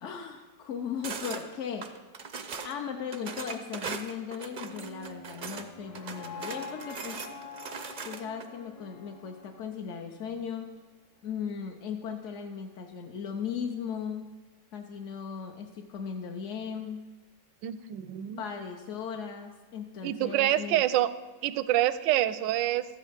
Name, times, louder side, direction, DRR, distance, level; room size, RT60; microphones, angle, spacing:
voice 1, 0.0-1.9 2.6-7.3 8.0-10.7 11.2-14.3 14.7-17.0 18.4-21.0, left 7 dB, 60° left, 3 dB, 0.8 m, -37 dB
sound 1, 1.0-1.4 1.8-2.7 3.1-5.7 5.9-8.4, right 5 dB, 65° right, 0.4 m, -39 dB
sound 2, 4.5-10.6, left 4 dB, 80° left, 2.0 m, -46 dB
voice 2, 17.6-18.4 20.0-21.1 21.4-22.9, right 13 dB, 85° right, 14 dB, 1.2 m, -26 dB
13.0 x 8.5 x 5.1 m, 1.3 s
omnidirectional pair, 1.9 m